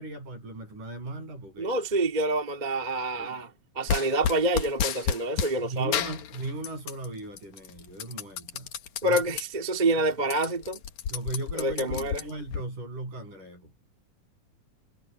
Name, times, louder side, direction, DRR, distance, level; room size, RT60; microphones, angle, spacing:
voice 1, 0.0-1.8 3.2-3.3 5.6-8.7 9.0-9.2 11.1-13.7, right 2 dB, 85° right, 9.6 m, -37 dB
voice 2, 1.6-3.5 3.8-6.0 9.0-10.8 11.5-12.3, right 2 dB, 15° right, 1.8 m, -27 dB
sound 1, 3.9-5.6 5.9-7.1 7.4-9.4 9.9-10.0 10.2-12.6, left 8 dB, 70° left, 2.8 m, -31 dB
omnidirectional pair, 3.6 m